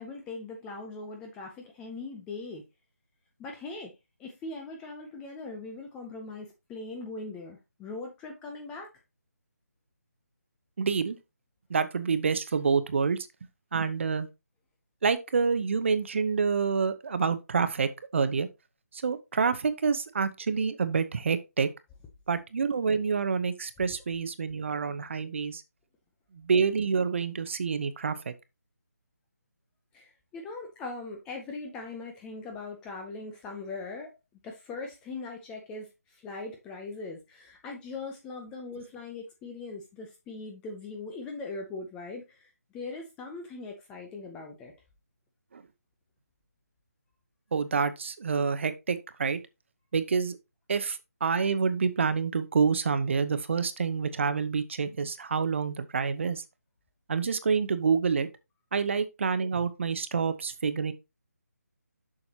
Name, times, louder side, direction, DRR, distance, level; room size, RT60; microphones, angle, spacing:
voice 1, 0.0-2.6 3.4-3.9 4.2-8.9 29.9-34.1 34.4-44.7, left 3 dB, 10° left, 0.6 m, -40 dB
voice 2, 10.8-11.2 11.7-13.2 13.7-14.3 15.0-18.5 18.9-21.7 22.3-25.6 26.3-28.3 45.5-45.6 47.5-49.4 49.9-50.4 50.7-56.4 57.1-58.3 58.7-60.9, right 5 dB, 45° right, 0.8 m, -27 dB
7.2 x 6.3 x 2.8 m
figure-of-eight pair, 160°, 9 cm